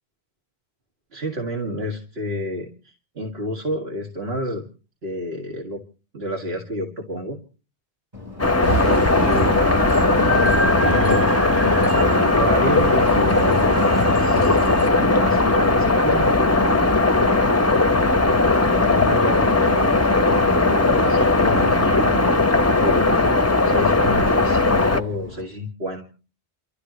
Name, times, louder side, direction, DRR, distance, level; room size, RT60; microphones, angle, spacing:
voice 1, 1.1-2.7 3.2-4.6 5.0-5.8 6.1-7.4 8.8-9.6 10.2-11.3 11.8-14.6 15.1-16.9 18.7-23.1 23.6-26.1, equal, 75° right, 0 dB, 2.4 m, -29 dB
Subway metro underground, 8.1-25.4, left 2 dB, 40° right, 4.0 m, -38 dB
sound 1, 8.4-25.0, left 2 dB, 20° left, 0.6 m, -18 dB
sound 2, 8.6-14.9, right 2 dB, 55° right, 1.8 m, -26 dB
29.0 x 13.5 x 3.1 m, 0.37 s
omnidirectional pair, 1.0 m